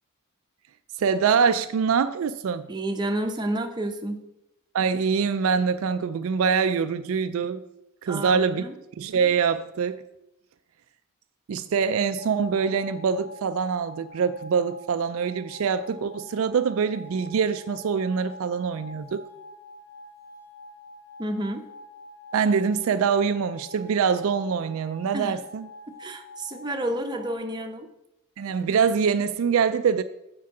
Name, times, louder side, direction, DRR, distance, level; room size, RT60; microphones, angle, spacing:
voice 1, 1.0-2.7 4.7-7.6 8.0-8.6 9.0-10.0 11.5-19.2 22.3-25.7 28.4-30.0, right 6 dB, 65° right, 0.4 m, -24 dB
voice 2, 2.7-4.3 8.1-8.8 21.2-21.6 25.1-25.4 26.0-27.9, right 1 dB, 20° right, 0.7 m, -30 dB
sound 1, 12.2-27.3, left 1 dB, 20° left, 2.2 m, -46 dB
7.4 x 4.6 x 5.8 m
head